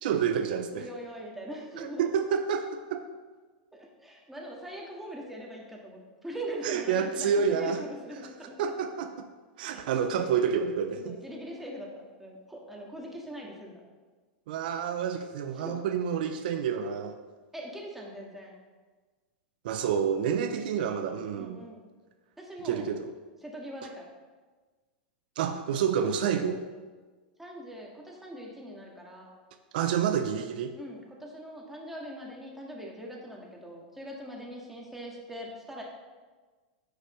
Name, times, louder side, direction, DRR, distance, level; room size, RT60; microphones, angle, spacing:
voice 1, 0.0-0.9 1.8-3.1 6.6-7.8 8.6-9.3 9.6-11.2 14.5-17.2 19.6-21.6 22.6-23.1 25.4-26.6 29.7-30.8, right 7 dB, 70° right, 7 dB, 0.6 m, -29 dB
voice 2, 0.7-2.1 3.7-8.7 9.7-10.3 10.9-13.8 15.6-15.8 17.5-18.5 21.4-21.8 22.4-22.8 23.4-24.1 27.4-29.3 30.7-35.8, equal, 5° right, -2 dB, 1.8 m, -42 dB
9.5 x 6.4 x 3.2 m, 1.3 s
hypercardioid pair, 120°, 5 cm